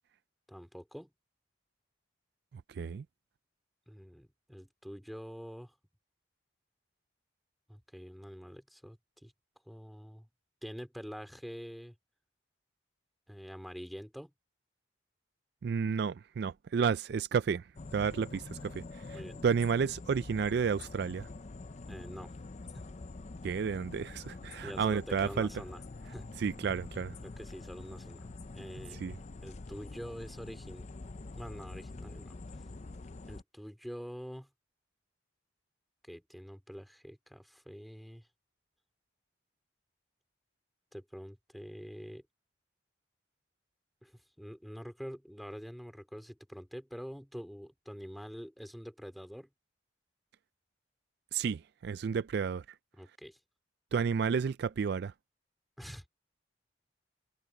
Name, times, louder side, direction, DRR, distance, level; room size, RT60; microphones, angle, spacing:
voice 1, 0.5-1.1 3.9-5.7 7.7-9.3 9.7-10.3 10.6-11.9 13.3-14.3 19.1-19.4 21.9-22.3 22.7-22.9 24.6-25.8 26.1-26.3 27.2-28.3 28.5-29.0 29.4-30.9 31.4-32.4 33.3-34.5 36.0-38.3 40.9-42.2 44.0-49.5 53.0-53.4 55.8-56.0, equal, ahead, 3.0 m, -46 dB
voice 2, 15.6-17.6 17.9-18.8 19.1-19.2 19.4-21.3 23.4-25.5 26.4-27.1 29.0-29.1 51.3-52.6 53.9-55.1, right 6 dB, 55° right, 0.3 m, -31 dB
sound 1, 17.8-33.4, left 3 dB, 35° left, 0.5 m, -46 dB
open air
head